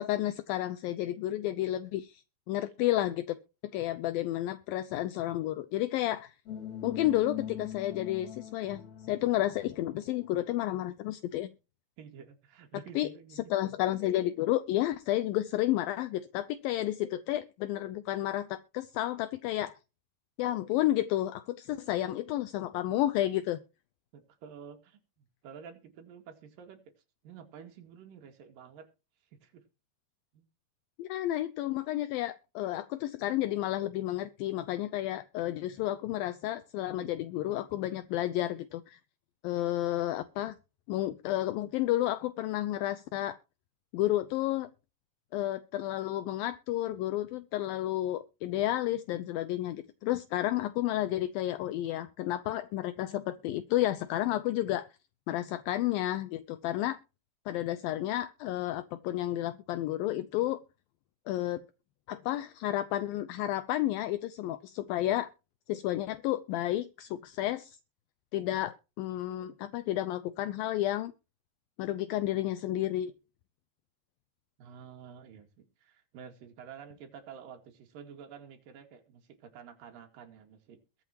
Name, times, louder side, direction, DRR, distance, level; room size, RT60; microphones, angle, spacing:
voice 1, 0.0-2.2 2.5-3.3 3.7-6.3 6.8-11.5 13.0-13.1 13.5-19.8 20.4-23.6 31.0-39.0 39.4-40.6 40.9-43.4 43.9-44.7 45.3-54.9 55.3-57.0 57.5-60.6 61.3-61.6 62.1-65.3 65.7-67.8 68.3-71.1 71.8-73.1, left 14 dB, 80° left, 2.3 m, -31 dB
sound 1, 6.5-10.4, left 9 dB, 50° left, 3.8 m, -42 dB
voice 2, 12.0-13.8 24.1-26.8 27.2-28.9 29.3-29.6 30.3-30.5 48.7-48.8 74.6-81.0, right 7 dB, 65° right, 3.6 m, -50 dB
22.0 x 7.4 x 3.0 m
omnidirectional pair, 4.5 m